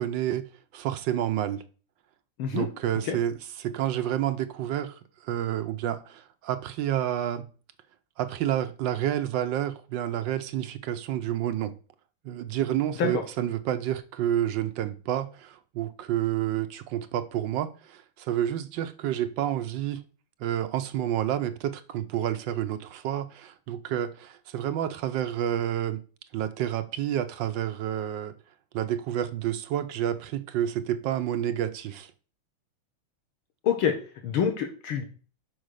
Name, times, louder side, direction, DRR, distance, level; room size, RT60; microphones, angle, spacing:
voice 1, 0.0-1.6 2.5-3.3 3.6-7.5 8.2-11.8 12.2-20.0 20.4-26.0 26.3-28.4 28.7-32.1, right 11 dB, 70° right, 1.2 m, -29 dB
voice 2, 34.2-35.0, left 7 dB, 75° left, 1.9 m, -26 dB
6.3 x 5.4 x 6.3 m
omnidirectional pair, 2.3 m